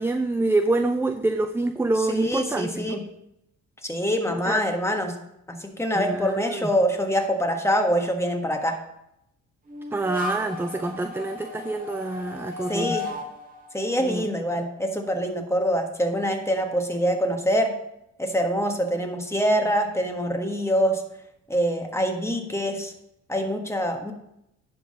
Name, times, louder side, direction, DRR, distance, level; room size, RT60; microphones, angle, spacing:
voice 1, 0.0-3.0 4.5-4.6 6.0-6.7 9.9-13.0 14.0-14.3 19.4-19.6, right 2 dB, 10° right, 8 dB, 0.4 m, -26 dB
voice 2, 2.0-3.0 3.8-5.1 5.5-8.8 12.7-13.1 13.7-17.7 18.2-21.0 21.5-22.9 23.3-24.1, equal, 10° left, 3 dB, 1.4 m, -25 dB
sound 1, 9.7-14.9, left 2 dB, 30° right, 1.8 m, -36 dB
10.5 x 3.9 x 6.3 m, 0.82 s
cardioid pair, 90°, 30 cm